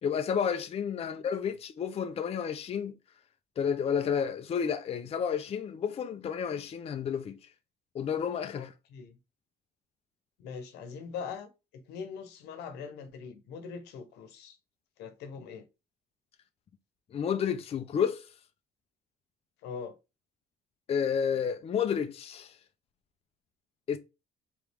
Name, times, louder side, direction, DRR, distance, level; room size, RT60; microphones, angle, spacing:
voice 1, 0.0-2.9 3.6-7.4 7.9-8.7 17.1-18.2 20.9-22.5 23.9-24.0, left 7 dB, 35° left, 0.5 m, -31 dB
voice 2, 8.5-9.2 10.4-14.6 15.0-15.7 19.6-20.0, left 6 dB, 90° left, 1.0 m, -42 dB
3.6 x 3.0 x 3.4 m
cardioid pair, 110°, 17 cm